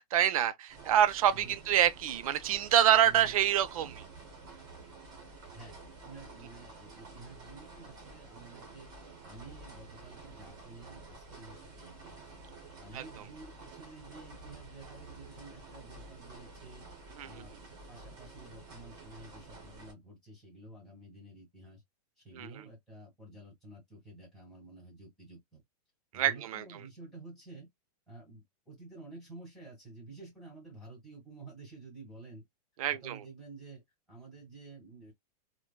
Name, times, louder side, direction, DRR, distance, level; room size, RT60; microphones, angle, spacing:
voice 1, 0.0-4.0 12.9-13.0 17.2-17.3 22.4-22.5 26.1-26.6 32.8-33.2, right 10 dB, 60° right, 0.5 m, -26 dB
sound 1, 0.7-19.9, right 3 dB, 20° right, 1.0 m, -50 dB
voice 2, 1.3-1.7 3.0-3.3 5.5-5.8 6.0-8.9 9.2-12.3 12.8-16.9 17.2-21.8 22.2-25.6 26.1-27.7 28.1-32.4 32.9-33.8 34.1-35.1, right 2 dB, ahead, 1.7 m, -51 dB
3.2 x 2.2 x 2.2 m
supercardioid pair, 170°, 20 cm